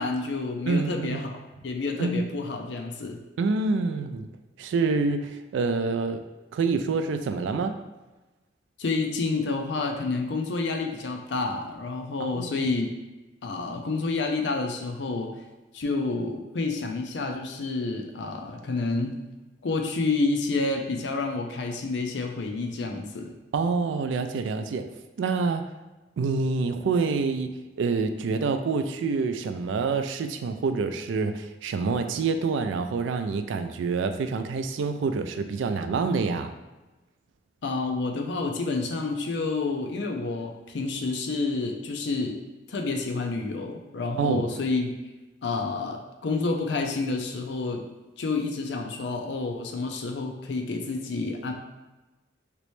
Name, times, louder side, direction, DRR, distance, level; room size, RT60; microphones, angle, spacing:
voice 1, 0.0-1.3 1.6-3.2 8.8-12.9 13.4-15.3 15.7-19.2 19.6-23.3 37.6-42.4 42.7-44.9 45.4-47.9 48.2-51.5, left 3 dB, 70° left, 4 dB, 0.5 m, -29 dB
voice 2, 0.7-1.2 2.0-2.2 3.4-4.3 4.6-6.2 6.5-7.8 12.2-12.7 23.5-24.9 25.2-25.7 26.2-36.5 44.2-44.5, right 4 dB, 85° right, 8 dB, 0.3 m, -27 dB
3.1 x 3.0 x 3.1 m, 1.1 s
head